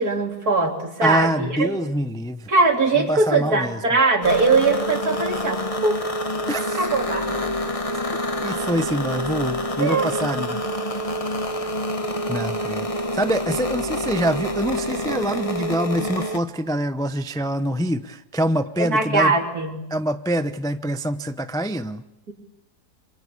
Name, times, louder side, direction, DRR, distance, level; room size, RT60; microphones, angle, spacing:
voice 1, 0.0-1.8 2.5-6.0 6.8-7.6 9.8-10.1 18.8-19.8 22.3-22.4, right 3 dB, 65° right, 3 dB, 4.0 m, -21 dB
voice 2, 1.0-2.5 3.0-3.8 6.5-6.8 8.4-10.6 11.6-11.7 12.3-19.3 19.9-22.0, right 1 dB, 5° left, 10 dB, 0.5 m, -25 dB
sound 1, 4.2-16.4, left 1 dB, 20° left, 1.3 m, -27 dB
27.5 x 24.5 x 8.6 m, 0.82 s
omnidirectional pair, 1.7 m